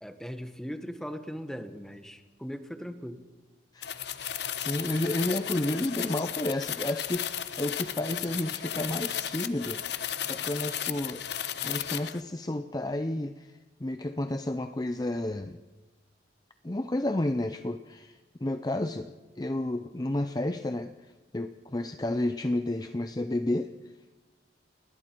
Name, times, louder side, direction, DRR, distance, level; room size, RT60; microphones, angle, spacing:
voice 1, 0.0-3.2, equal, 5° left, 8 dB, 1.2 m, -39 dB
voice 2, 3.7-4.0 4.5-9.8 10.3-11.2 11.6-15.6 16.6-23.7, left 1 dB, 20° left, 8 dB, 0.6 m, -31 dB
sound 1, 3.8-12.2, left 10 dB, 65° left, 1.0 m, -34 dB
30.0 x 21.0 x 4.5 m, 1.2 s
head